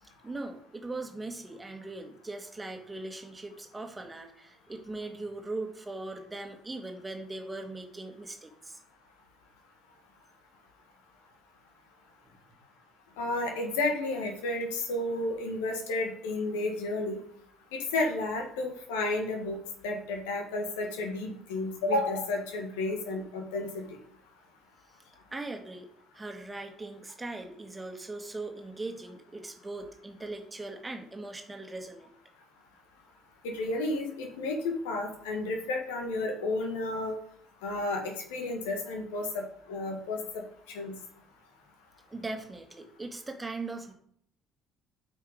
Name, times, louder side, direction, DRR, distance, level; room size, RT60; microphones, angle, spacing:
voice 1, 0.2-8.8 25.3-25.9 26.1-32.1 42.1-43.9, right 2 dB, 20° right, 4 dB, 1.8 m, -40 dB
voice 2, 13.2-17.2 17.7-19.6 19.8-23.8 33.4-37.1 37.6-40.4 40.7-40.9, left 2 dB, 70° left, 3 dB, 1.5 m, -32 dB
8.7 x 5.5 x 5.0 m, 0.66 s
figure-of-eight pair, 55°, 0 cm